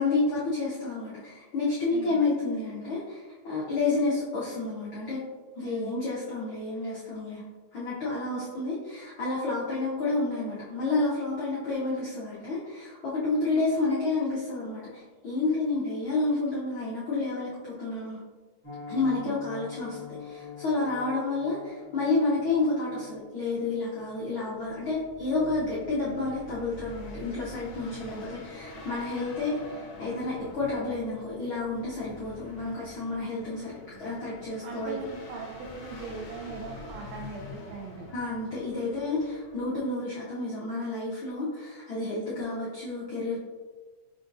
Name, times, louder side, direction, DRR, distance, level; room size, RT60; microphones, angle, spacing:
voice 1, 0.0-5.2 5.5-7.4 7.7-18.2 18.9-33.7 34.0-35.0 38.1-43.4, left 3 dB, 85° left, -8 dB, 1.1 m, -30 dB
voice 2, 1.9-2.3 5.6-5.9 19.1-19.4 28.0-28.3 34.6-38.1, right 4 dB, 85° right, 0 dB, 1.4 m, -39 dB
Piano, 18.6-29.5 29.8-30.0 30.3-30.5 30.8-31.1 31.4-31.5, left 6 dB, 40° left, 0.9 m, -47 dB
sound 1, 24.8-39.8, left 2 dB, 65° left, 1.4 m, -46 dB
5.6 x 3.7 x 2.6 m, 1.4 s
omnidirectional pair, 3.6 m